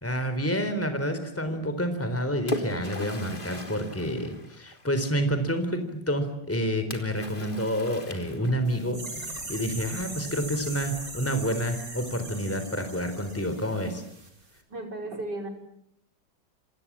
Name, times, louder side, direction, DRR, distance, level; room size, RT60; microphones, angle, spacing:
voice 1, 0.0-14.0, equal, 5° left, 8 dB, 3.8 m, -29 dB
Splash splatter, 1.9-5.1 6.9-8.8, left 1 dB, 25° left, 3.6 m, -38 dB
sound 1, 8.6-14.3 14.5-14.6, right 2 dB, 50° right, 5.2 m, -40 dB
voice 2, 14.7-15.5, right 2 dB, 65° right, 5 dB, 6.2 m, -35 dB
29.0 x 26.0 x 7.5 m, 0.74 s
omnidirectional pair, 2.0 m